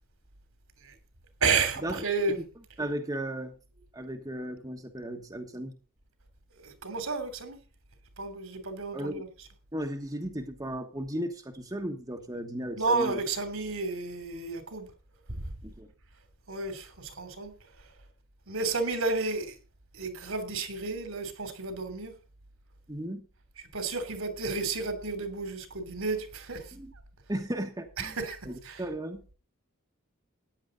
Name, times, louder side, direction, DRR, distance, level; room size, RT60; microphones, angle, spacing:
voice 1, 1.4-2.4 6.6-7.6 8.2-9.3 12.8-14.9 15.3-15.4 16.5-17.5 18.5-19.6 19.9-22.1 23.7-26.7 28.0-28.4 28.6-28.8, right 4 dB, 70° right, 3.1 m, -31 dB
voice 2, 2.8-3.5 3.9-5.8 8.9-9.2 9.7-13.2 15.6-15.9 22.9-23.3 26.7-26.9 27.3-28.2 28.4-29.2, right 1 dB, 15° right, 1.4 m, -35 dB
14.5 x 10.0 x 3.9 m
head